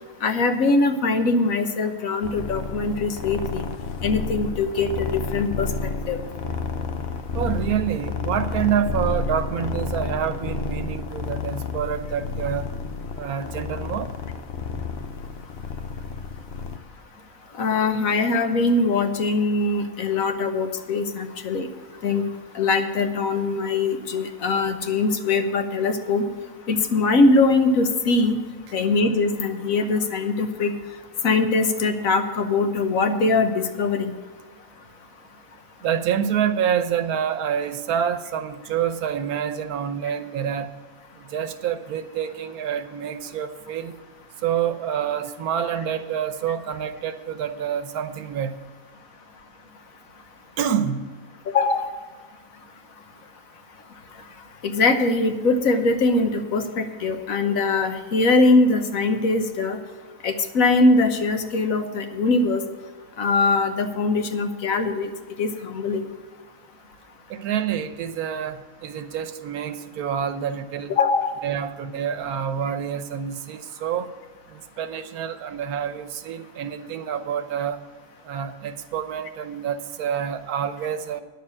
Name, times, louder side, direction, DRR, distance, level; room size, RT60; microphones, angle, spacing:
voice 1, 0.2-3.7 4.0-6.2 17.5-21.7 22.0-22.2 22.5-26.3 26.7-28.4 28.7-30.7 31.2-34.1 51.5-51.9 54.6-59.8 60.2-62.6 63.2-65.1 65.4-66.0 70.9-71.4, left 3 dB, 70° left, 7 dB, 1.4 m, -22 dB
sound 1, 2.2-16.8, left 4 dB, 55° left, 0.8 m, -30 dB
voice 2, 7.3-12.7 13.2-14.1 35.8-40.7 41.3-43.9 44.4-48.6 50.6-51.1 67.3-70.9 71.4-74.1 74.8-77.8 78.3-81.2, right 8 dB, 85° right, 11 dB, 1.3 m, -27 dB
9.9 x 6.8 x 8.6 m, 1.4 s
omnidirectional pair, 1.5 m